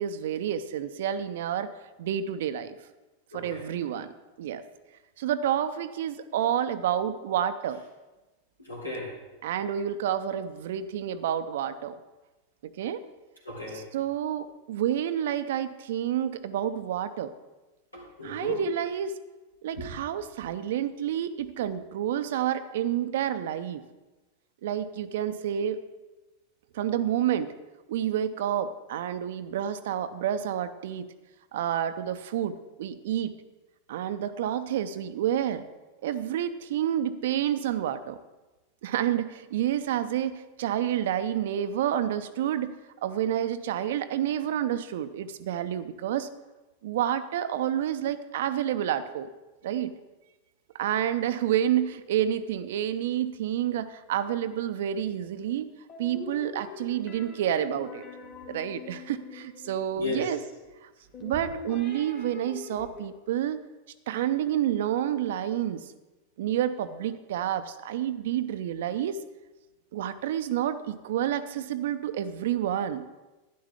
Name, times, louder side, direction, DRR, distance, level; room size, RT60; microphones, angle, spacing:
voice 1, 0.0-1.7 2.0-2.8 3.3-4.1 4.4-4.6 5.2-7.8 9.4-11.9 12.6-13.0 13.7-17.3 18.2-19.1 19.6-23.8 24.6-25.8 26.7-27.5 27.9-31.1 31.5-33.4 33.9-35.6 36.0-38.2 38.8-42.7 43.0-46.3 46.8-49.3 49.6-49.9 50.7-55.7 56.0-58.0 58.5-60.4 60.8-60.9 61.2-63.6 64.1-65.9 66.4-69.2 69.9-73.1, right 10 dB, 55° right, 12 dB, 0.5 m, -29 dB
voice 2, 3.3-3.7 8.6-9.1 13.4-13.8 17.9-18.6 19.8-19.9 60.0-60.3, left 2 dB, 85° left, -4 dB, 3.4 m, -35 dB
sound 1, 55.9-60.1 61.1-63.1, left 5 dB, 30° left, 2.0 m, -43 dB
11.5 x 10.5 x 3.5 m, 1.1 s
figure-of-eight pair, 90°, 0 cm